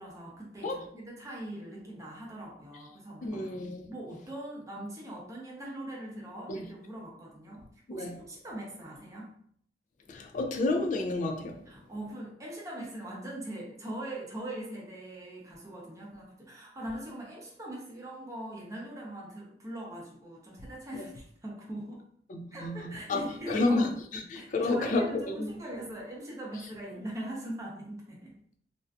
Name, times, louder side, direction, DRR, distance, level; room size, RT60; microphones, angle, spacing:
voice 1, 0.0-3.6 3.9-9.3 11.7-22.0 22.5-23.9 24.3-28.4, right 1 dB, 20° right, 0.6 m, -41 dB
voice 2, 3.2-3.9 6.5-6.6 7.9-8.2 10.1-11.7 20.9-21.1 22.3-25.5, left 2 dB, 45° left, 0.3 m, -31 dB
2.5 x 2.3 x 2.2 m
head